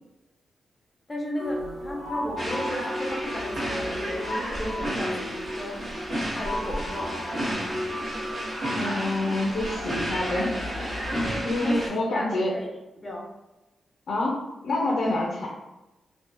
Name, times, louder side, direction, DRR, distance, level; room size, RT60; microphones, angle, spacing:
voice 1, 1.1-5.9 6.3-7.8 11.6-13.4, left 1 dB, 20° left, -1 dB, 0.4 m, -35 dB
sound 1, 1.4-11.4, left 1 dB, 80° right, 0.9 m, -35 dB
sound 2, 2.4-11.9, equal, 50° right, 0.8 m, -32 dB
voice 2, 8.7-10.6 11.4-12.6 14.1-14.4 14.6-15.5, left 2 dB, 75° left, -4 dB, 0.5 m, -27 dB
2.6 x 2.1 x 2.2 m, 0.99 s
wide cardioid pair, 140°, 0 cm